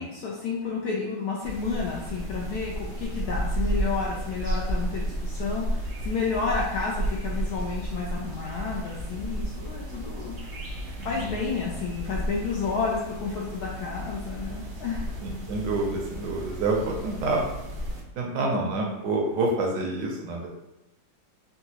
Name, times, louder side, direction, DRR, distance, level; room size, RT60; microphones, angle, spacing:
voice 1, 0.0-10.4 11.0-15.1, left 4 dB, 75° left, -3 dB, 0.9 m, -31 dB
sound 1, 1.4-18.0, right 1 dB, 85° right, 0.6 m, -33 dB
voice 2, 11.0-11.4 15.2-17.4 18.1-20.5, right 2 dB, 70° right, 0 dB, 1.1 m, -28 dB
3.9 x 2.3 x 2.8 m, 0.93 s
omnidirectional pair, 2.1 m